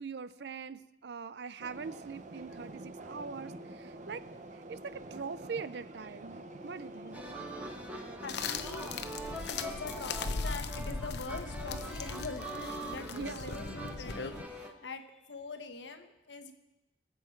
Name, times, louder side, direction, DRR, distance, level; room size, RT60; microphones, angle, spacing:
voice 1, 0.0-4.2 4.7-7.2 13.1-13.7, right 5 dB, 70° right, 16 dB, 0.5 m, -42 dB
sound 1, 1.6-10.4, right 1 dB, 45° right, 0.9 m, -47 dB
sound 2, 7.1-14.7, right 1 dB, 10° right, 1.4 m, -43 dB
voice 2, 8.2-12.5 12.8-16.5, left 3 dB, 85° left, 7 dB, 1.2 m, -44 dB
sound 3, 8.3-14.4, left 4 dB, 65° left, 0.7 m, -39 dB
22.0 x 7.9 x 4.5 m, 1.0 s
head